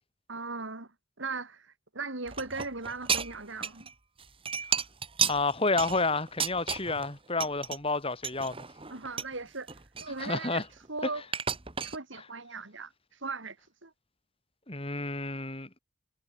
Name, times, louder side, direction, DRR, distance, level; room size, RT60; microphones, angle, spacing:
voice 1, 0.3-3.9 8.9-9.7 10.0-10.6 10.9-11.2 11.8-13.6 13.8-13.9, right 3 dB, 60° right, 2.5 m, -38 dB
sound 1, 2.3-3.9 4.2-7.1 7.4-7.8 8.2-9.3 9.7-10.9 11.3-12.0, right 7 dB, 25° right, 2.0 m, -33 dB
voice 2, 5.3-8.6 10.2-10.6 14.7-15.7, left 3 dB, 25° left, 3.2 m, -30 dB
head